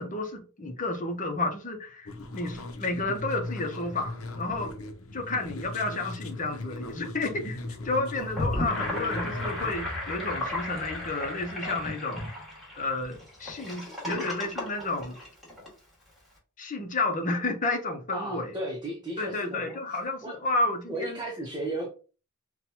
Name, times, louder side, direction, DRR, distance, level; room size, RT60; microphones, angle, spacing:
voice 1, 0.0-4.7 5.1-7.6 7.8-12.3 12.7-15.2 16.6-18.5 19.2-21.2, left 2 dB, 40° left, 0.8 m, -31 dB
sound 1, 2.0-9.8, left 2 dB, 70° left, 0.7 m, -38 dB
Gurgling / Sink (filling or washing), 8.2-15.7, left 1 dB, ahead, 1.8 m, -34 dB
voice 2, 18.1-19.8 20.2-20.5 20.9-21.9, right 1 dB, 20° right, 0.9 m, -34 dB
5.8 x 2.3 x 2.9 m
head